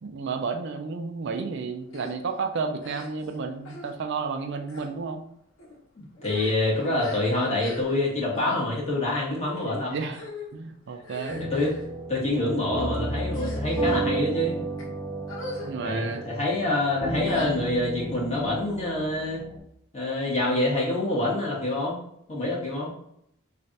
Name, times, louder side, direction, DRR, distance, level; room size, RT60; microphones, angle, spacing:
voice 1, 0.0-5.2 9.9-10.2 10.5-11.5 15.6-16.2, right 4 dB, 60° right, 6 dB, 0.4 m, -32 dB
sound 1, 1.9-2.1 2.8-3.3 3.6-3.9 4.6-4.9 5.6-5.8 6.1-8.1 8.3-8.6 9.4-9.7 10.1-10.5 11.0-11.9 12.5-12.8 13.3-14.0 14.6-14.8 15.3-15.7 16.0-16.2 17.2-17.9, left 2 dB, 85° left, 1.1 m, -40 dB
voice 2, 6.0-9.9 11.5-11.7 12.1-14.6 15.8-19.4 19.9-22.0 22.3-22.9, left 2 dB, 35° left, -5 dB, 1.4 m, -26 dB
sound 2, 11.3-19.6, right 2 dB, 15° right, 0.5 m, -32 dB
3.2 x 2.5 x 4.0 m, 0.72 s
head